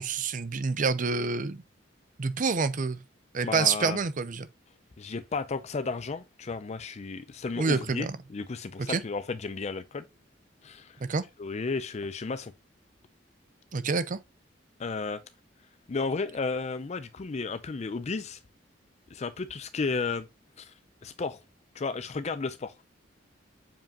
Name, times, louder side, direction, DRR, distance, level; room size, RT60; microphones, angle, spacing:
voice 1, 0.0-1.6 2.2-3.0 3.3-4.5 7.6-8.2 8.9-9.0 11.1-11.2 13.7-14.2, right 4 dB, 45° right, 0.6 m, -27 dB
voice 2, 3.4-4.0 5.0-10.0 10.6-11.0 11.4-12.5 14.8-15.2 15.9-18.4 19.1-20.3 20.6-20.7 21.0-21.4 21.7-22.9, left 4 dB, 35° left, 0.5 m, -33 dB
7.2 x 5.0 x 2.8 m
head